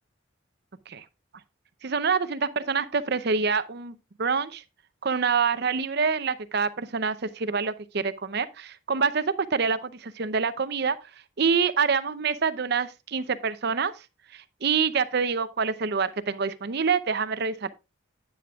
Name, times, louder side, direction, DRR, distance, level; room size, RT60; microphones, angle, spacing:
voice 1, 1.8-4.6 5.0-11.0 11.4-13.9 14.3-17.7, right 5 dB, 50° right, 0.6 m, -26 dB
10.0 x 9.3 x 2.4 m
head